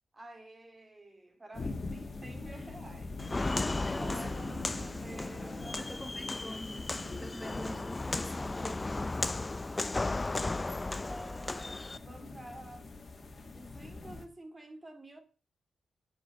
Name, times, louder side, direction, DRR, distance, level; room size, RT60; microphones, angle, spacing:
voice 1, 0.1-6.0 11.1-13.0 13.5-15.2, right 1 dB, 20° right, 2.9 m, -50 dB
sound 1, 1.5-14.2, left 3 dB, 40° left, 2.5 m, -45 dB
voice 2, 1.8-2.7 3.5-4.3 5.8-9.2, left 1 dB, 5° left, 1.3 m, -45 dB
Walk footsteps, 3.2-12.0, left 2 dB, 20° left, 0.5 m, -35 dB
sound 2, 4.0-12.1, right 2 dB, 35° right, 1.9 m, -53 dB
9.4 x 8.0 x 7.4 m
cardioid pair, 100°, 0 cm